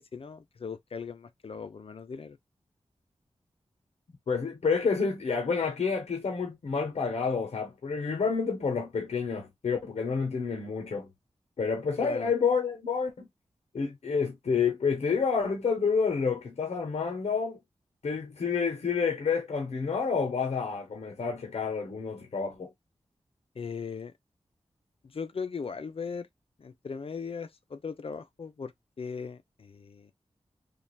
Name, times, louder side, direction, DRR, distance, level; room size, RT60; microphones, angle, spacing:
voice 1, 0.0-2.4 12.0-12.3 23.5-24.1 25.0-26.3 26.6-28.7 29.0-30.1, left 5 dB, 60° left, 0.6 m, -38 dB
voice 2, 4.3-11.1 11.6-13.3 13.7-17.6 18.0-22.7, left 5 dB, 85° left, 0.9 m, -29 dB
3.2 x 2.5 x 2.3 m
wide cardioid pair, 70°, 11 cm